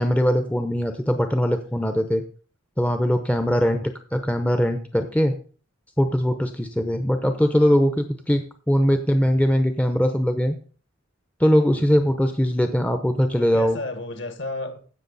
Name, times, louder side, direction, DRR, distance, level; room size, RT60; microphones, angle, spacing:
voice 1, 0.0-2.2 2.8-5.3 6.0-10.5 11.4-13.8, equal, 5° left, 7 dB, 0.7 m, -21 dB
voice 2, 3.4-3.8 11.7-11.8 13.4-14.8, left 2 dB, 55° left, 8 dB, 1.6 m, -33 dB
16.0 x 6.2 x 4.0 m, 0.40 s
head